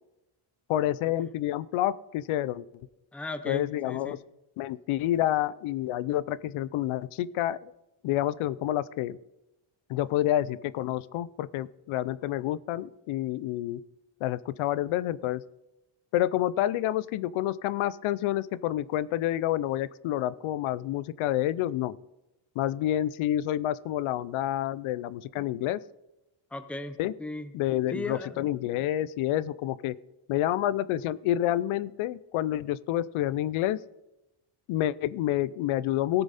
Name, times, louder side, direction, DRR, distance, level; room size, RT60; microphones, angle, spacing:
voice 1, 0.7-2.6 3.5-4.2 4.6-7.7 8.0-9.2 9.9-13.8 14.2-15.4 16.1-22.0 22.6-25.8 27.0-27.1 27.5-30.0 30.3-33.8 34.7-36.2, left 13 dB, 90° left, 18 dB, 0.6 m, -28 dB
voice 2, 3.1-4.2 26.5-27.5 27.9-28.4, left 2 dB, 5° left, 10 dB, 0.6 m, -37 dB
18.5 x 7.0 x 4.1 m, 0.95 s
cardioid pair, 145°, 48 cm